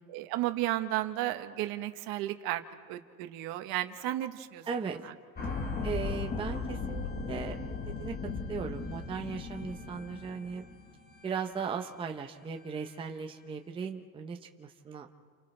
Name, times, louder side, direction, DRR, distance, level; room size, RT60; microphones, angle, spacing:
voice 1, 0.1-2.6 2.9-4.6, right 15 dB, 60° right, 8 dB, 1.2 m, -33 dB
voice 2, 4.7-5.0 5.8-7.6 7.9-8.2 8.5-10.6 11.2-15.1, right 5 dB, 10° right, 3 dB, 0.7 m, -37 dB
sound 1, 5.4-11.6 11.8-11.9, left 4 dB, 20° left, 1.5 m, -37 dB
30.0 x 28.0 x 3.3 m, 2.1 s
cardioid pair, 150°, 42 cm